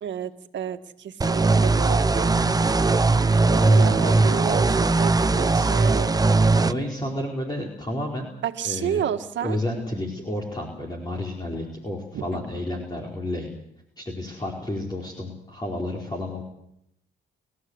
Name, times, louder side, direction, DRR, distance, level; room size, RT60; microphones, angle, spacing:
voice 1, 0.0-2.4 3.5-6.1 8.4-9.6 12.1-12.7, right 9 dB, 65° right, 7 dB, 2.1 m, -31 dB
sound 1, 1.2-6.7, right 3 dB, 20° right, 0.9 m, -19 dB
voice 2, 3.4-4.7 6.6-8.3 8.6-9.0 9.4-13.5 14.0-16.4, left 1 dB, 20° left, -1 dB, 4.7 m, -31 dB
29.5 x 14.5 x 8.2 m, 0.77 s
cardioid pair, 90°, 20 cm